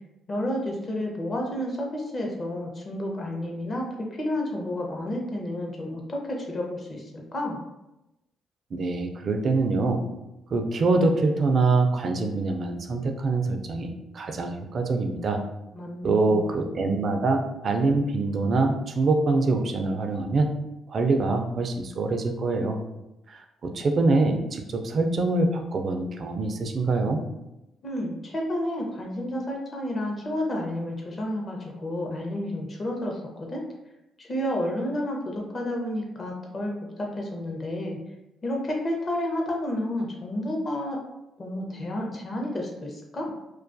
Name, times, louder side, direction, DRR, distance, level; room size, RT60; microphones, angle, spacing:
voice 1, 0.3-7.6 15.7-16.5 27.8-33.6 34.2-36.7 37.0-38.0 38.4-41.0 41.4-43.3, left 1 dB, 40° left, 0 dB, 0.6 m, -31 dB
voice 2, 8.7-10.0 10.5-15.4 16.0-20.5 20.9-22.8 23.3-27.2, right 3 dB, 50° right, 4 dB, 0.3 m, -24 dB
2.3 x 2.2 x 2.5 m, 0.93 s
cardioid pair, 90°, 0 cm